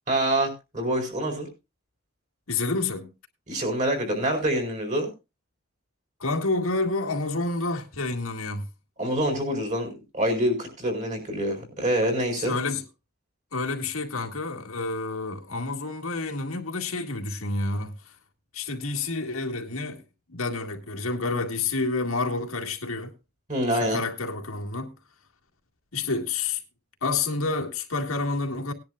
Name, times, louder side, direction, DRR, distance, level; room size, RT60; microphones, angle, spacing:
voice 1, 0.1-1.5 3.5-5.1 9.0-12.6 23.5-24.0, right 1 dB, 35° right, 4.8 m, -26 dB
voice 2, 2.5-3.1 6.2-8.6 12.4-12.8 13.5-17.9 18.5-20.0 20.3-23.1 23.7-24.9 25.9-26.6 27.0-28.7, left 3 dB, 85° left, 2.1 m, -29 dB
19.0 x 10.5 x 2.4 m
head